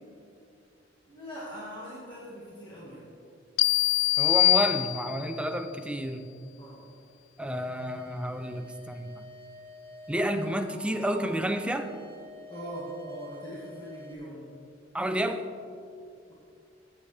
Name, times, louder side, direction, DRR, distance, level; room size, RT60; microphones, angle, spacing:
voice 1, 1.1-3.1 6.6-6.8 12.5-14.5, equal, 25° left, -8 dB, 1.8 m, -41 dB
sound 1, 3.6-5.4, left 16 dB, 65° left, 0.3 m, -23 dB
voice 2, 4.1-6.3 7.4-9.3 10.1-11.9 14.9-15.5, right 1 dB, 5° right, 7 dB, 0.5 m, -30 dB
sound 2, 7.5-14.1, left 1 dB, 30° right, 1.4 m, -48 dB
15.5 x 8.5 x 3.3 m, 2.5 s
head